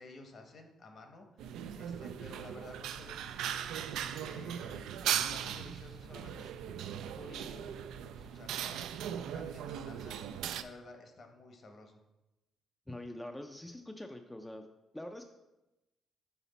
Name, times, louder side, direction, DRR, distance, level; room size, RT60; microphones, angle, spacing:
voice 1, 0.0-6.5 7.0-7.7 8.2-8.8 9.1-10.2 10.5-12.0, left 2 dB, 45° left, 5 dB, 0.9 m, -53 dB
minsk hotel cafe, 1.4-10.6, right 9 dB, 85° right, 0.3 m, -38 dB
voice 2, 12.9-14.6 14.9-15.3, left 1 dB, 10° left, 4 dB, 0.4 m, -44 dB
5.7 x 4.9 x 4.0 m, 0.99 s
cardioid pair, 110°, 0 cm